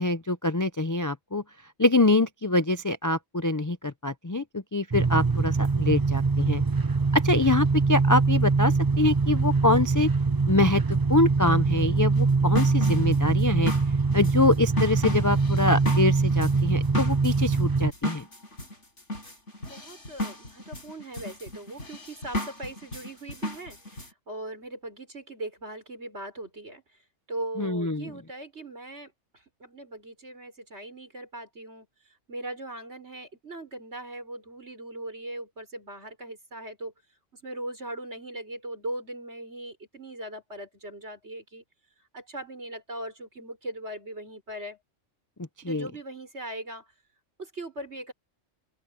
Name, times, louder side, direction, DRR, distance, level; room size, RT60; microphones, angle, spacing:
voice 1, 0.0-1.4 1.8-6.6 7.1-10.1 10.5-10.8 11.1-13.7 14.1-18.3 27.6-28.1 45.6-45.9, left 2 dB, 20° left, 0.5 m, -25 dB
sound 1, 4.9-17.9, right 4 dB, 25° right, 0.6 m, -23 dB
sound 2, 12.1-24.1, left 1 dB, 70° left, 7.7 m, -35 dB
voice 2, 19.6-23.8 24.3-26.8 27.3-29.1 29.6-31.9 32.3-36.9 37.4-41.6 42.1-44.8 45.6-46.9 47.4-48.1, right 1 dB, 60° right, 6.0 m, -39 dB
open air
omnidirectional pair, 1.3 m